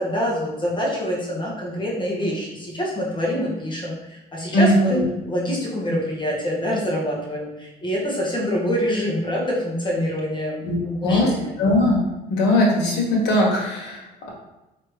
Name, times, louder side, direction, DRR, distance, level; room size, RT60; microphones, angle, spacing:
voice 1, 0.0-11.6, equal, 25° left, -4 dB, 1.5 m, -25 dB
voice 2, 4.5-5.0 10.6-10.8 11.0-11.3 11.6-12.0 12.3-14.3, left 1 dB, 80° left, -1 dB, 1.4 m, -19 dB
4.8 x 3.3 x 3.3 m, 0.98 s
cardioid pair, 110°, 17 cm